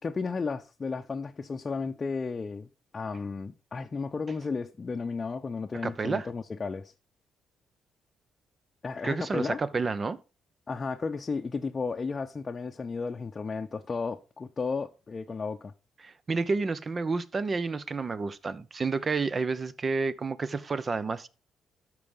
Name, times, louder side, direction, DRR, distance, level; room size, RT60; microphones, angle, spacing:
voice 1, 0.0-2.7 2.9-6.9 8.8-9.6 10.7-15.7, left 4 dB, 35° left, 0.7 m, -33 dB
voice 2, 5.8-6.3 9.0-10.2 16.0-21.3, right 4 dB, 35° right, 0.8 m, -30 dB
12.5 x 4.9 x 5.3 m
cardioid pair, 90°, 0 cm